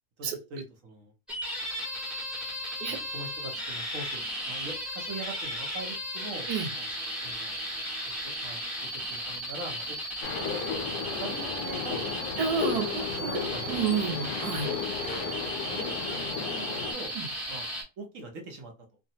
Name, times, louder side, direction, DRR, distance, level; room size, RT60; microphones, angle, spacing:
voice 1, 0.2-1.1 2.9-6.5 6.7-7.6 8.1-8.6 8.9-10.4 10.8-12.2 13.2-13.8 15.7-17.1 17.5-17.7 18.0-18.7, right 2 dB, 60° right, 3 dB, 1.1 m, -43 dB
sound 1, 1.3-17.8, equal, ahead, 0.8 m, -35 dB
sound 2, 10.2-16.9, left 6 dB, 85° left, 1.3 m, -34 dB
voice 2, 12.4-13.4 13.7-14.7 17.1-17.3, right 6 dB, 75° right, 3 dB, 1.3 m, -30 dB
3.3 x 2.1 x 2.7 m, 0.28 s
omnidirectional pair, 1.7 m